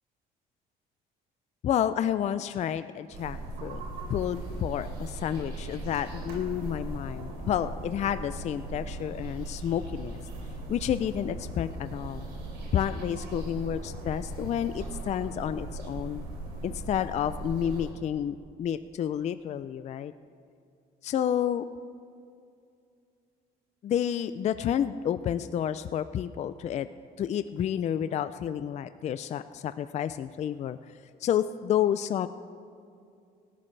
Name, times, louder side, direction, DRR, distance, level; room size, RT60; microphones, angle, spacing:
voice 1, 1.6-3.8 4.1-10.2 10.7-12.3 12.7-16.3 16.6-20.1 21.0-21.6 23.8-26.9 27.2-30.8 31.2-32.3, left 9 dB, 40° left, 12 dB, 0.4 m, -30 dB
sound 1, 3.1-17.9, right 2 dB, 75° right, 3.8 m, -38 dB
18.5 x 13.5 x 3.3 m, 2.4 s
cardioid pair, 110°, 17 cm